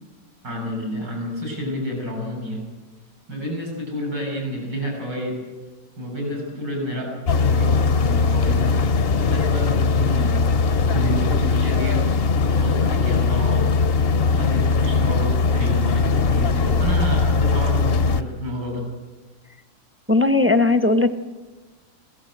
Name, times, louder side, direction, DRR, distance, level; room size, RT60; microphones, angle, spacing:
voice 1, 0.4-2.7 3.3-5.5 6.0-8.8 9.2-12.1 12.4-18.9, equal, 85° right, 1 dB, 8.4 m, -29 dB
sound 1, 7.3-18.2, left 4 dB, 50° left, 0.8 m, -20 dB
voice 2, 20.1-21.1, left 2 dB, 15° right, 9 dB, 0.5 m, -17 dB
27.5 x 17.0 x 8.0 m, 1.3 s
omnidirectional pair, 1.9 m